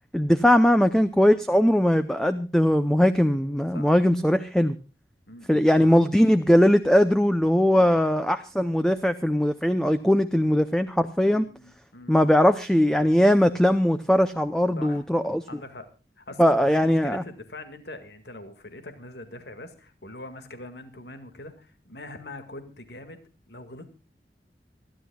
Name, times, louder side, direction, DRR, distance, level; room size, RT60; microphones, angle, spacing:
voice 1, 0.1-4.7 5.5-11.5 12.1-15.4 16.4-17.2, equal, 5° left, 10 dB, 0.6 m, -20 dB
voice 2, 5.3-6.0 11.3-12.1 14.8-15.0 15.5-15.9 16.2-23.9, left 2 dB, 75° left, 8 dB, 2.0 m, -43 dB
26.5 x 11.5 x 2.3 m, 0.33 s
head